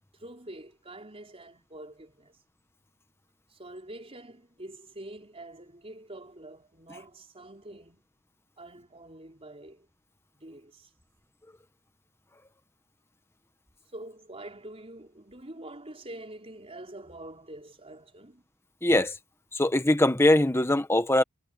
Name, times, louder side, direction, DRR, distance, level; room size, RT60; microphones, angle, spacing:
voice 1, 0.1-2.4 3.5-8.0 8.6-9.9 10.4-10.9 13.9-18.4, right 1 dB, 25° right, 5.3 m, -45 dB
voice 2, 18.8-19.2 19.5-21.2, left 1 dB, 10° left, 1.4 m, -22 dB
head